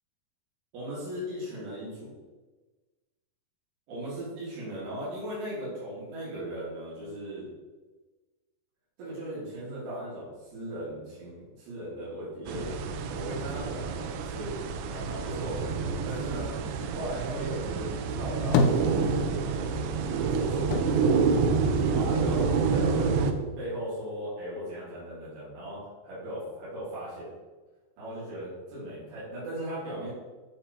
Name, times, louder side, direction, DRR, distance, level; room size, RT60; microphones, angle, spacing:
voice 1, 0.7-2.1 3.9-7.5 9.0-12.7 13.1-16.5 16.9-17.9 18.2-18.7 19.4-21.2 21.9-27.3 28.0-30.1, right 1 dB, 75° right, -10 dB, 3.8 m, -38 dB
sound 1, 12.5-23.3, right 5 dB, 90° right, 2.0 m, -28 dB
sound 2, 18.1-19.6 19.9-22.3 22.6-23.5, left 4 dB, 90° left, 1.9 m, -30 dB
8.1 x 3.0 x 4.2 m, 1.3 s
omnidirectional pair, 4.6 m